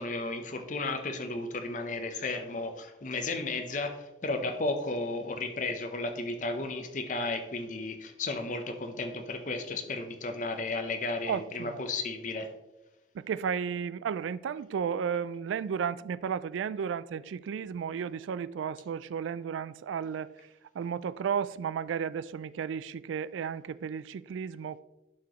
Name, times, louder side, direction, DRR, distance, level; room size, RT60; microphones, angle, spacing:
voice 1, 0.0-12.5, left 3 dB, 40° left, 0.7 m, -34 dB
voice 2, 11.3-11.8 13.1-20.3 20.7-24.8, right 7 dB, 90° right, 0.3 m, -33 dB
11.5 x 4.9 x 3.0 m
head